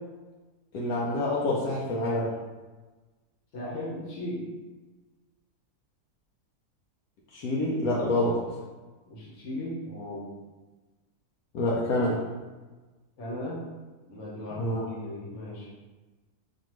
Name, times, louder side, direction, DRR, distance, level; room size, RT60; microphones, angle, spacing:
voice 1, 0.7-2.3 7.3-8.4 11.5-12.2 14.6-14.8, left 1 dB, 75° left, -5 dB, 1.1 m, -27 dB
voice 2, 3.5-4.5 9.1-10.3 13.2-13.6 14.1-15.7, left 1 dB, 55° left, -5 dB, 1.3 m, -36 dB
4.2 x 2.9 x 3.1 m, 1.2 s
omnidirectional pair, 1.6 m